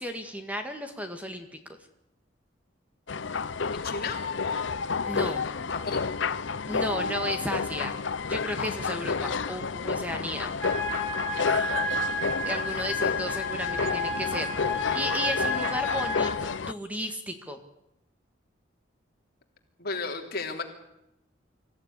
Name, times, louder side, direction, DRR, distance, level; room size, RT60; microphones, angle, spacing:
voice 1, 0.0-1.6 5.0-5.4 6.7-8.0 8.3-10.5 12.4-14.7 14.9-17.6, equal, 10° right, 6 dB, 1.8 m, -34 dB
sound 1, 3.1-16.7, left 5 dB, 75° left, 0.8 m, -30 dB
voice 2, 3.7-4.2 5.2-5.3 5.7-6.0 19.8-20.6, left 4 dB, 55° left, 3 dB, 3.4 m, -33 dB
sound 2, 10.6-16.3, left 2 dB, 10° left, 5.4 m, -31 dB
25.0 x 15.0 x 9.9 m, 0.86 s
head